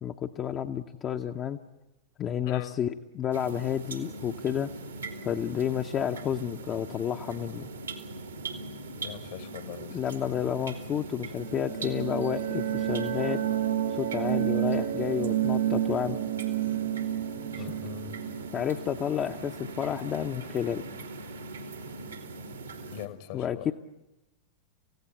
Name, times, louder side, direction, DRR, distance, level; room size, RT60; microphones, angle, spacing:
voice 1, 0.0-1.6 2.2-4.7 5.2-7.7 9.9-13.4 13.9-16.2 17.6-17.7 18.5-20.8 23.3-23.7, left 9 dB, 30° left, 0.8 m, -31 dB
voice 2, 2.4-2.7 9.0-9.9 17.6-18.2 22.9-23.7, left 13 dB, 50° left, 1.3 m, -41 dB
sound 1, 3.3-23.1, right 2 dB, 75° right, 2.2 m, -41 dB
sound 2, 11.4-20.0, right 11 dB, 55° right, 0.8 m, -30 dB
29.0 x 16.0 x 8.9 m
figure-of-eight pair, 90°, 0 cm